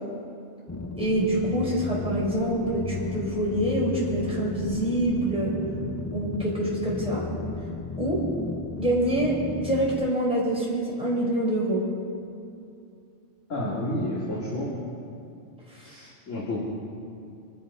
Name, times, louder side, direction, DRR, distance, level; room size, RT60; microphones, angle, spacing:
sound 1, 0.7-10.1, left 3 dB, 30° left, 0.3 m, -34 dB
voice 1, 1.0-5.5 6.1-7.2 8.0-8.2 8.8-11.8 15.7-15.9, right 1 dB, 5° right, -5 dB, 4.1 m, -26 dB
voice 2, 13.5-14.7 15.8-16.6, left 1 dB, 85° left, -6 dB, 2.8 m, -30 dB
24.5 x 11.0 x 5.5 m, 2.5 s
omnidirectional pair, 1.3 m